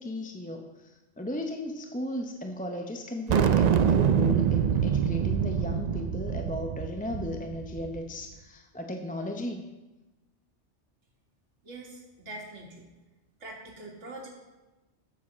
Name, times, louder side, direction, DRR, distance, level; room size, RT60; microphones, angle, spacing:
voice 1, 0.0-9.7, left 1 dB, 10° left, 3 dB, 0.5 m, -35 dB
sound 1, 3.3-8.0, right 7 dB, 60° right, 0.4 m, -25 dB
voice 2, 11.6-12.9 13.4-14.3, right 2 dB, 75° right, -2 dB, 2.0 m, -43 dB
8.4 x 7.4 x 6.0 m, 1.1 s
omnidirectional pair, 1.2 m